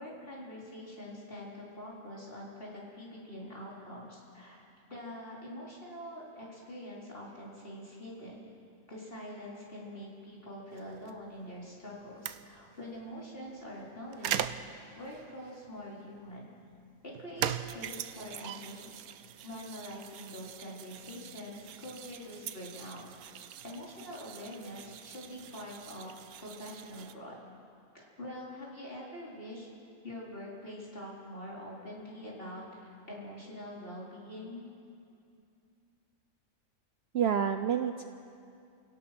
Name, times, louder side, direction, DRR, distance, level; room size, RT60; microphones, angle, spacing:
voice 1, 0.0-4.6 4.9-8.5 8.9-14.5 14.9-16.5 17.0-19.0 19.4-23.0 23.6-26.1 26.4-27.4 27.9-29.7 30.0-34.7, left 1 dB, 40° left, -5 dB, 4.7 m, -45 dB
sound 1, 10.7-27.1, right 10 dB, 90° right, 1.2 m, -42 dB
voice 2, 37.1-38.0, right 8 dB, 55° right, 8 dB, 0.8 m, -29 dB
29.5 x 17.0 x 6.1 m, 2.5 s
omnidirectional pair, 1.5 m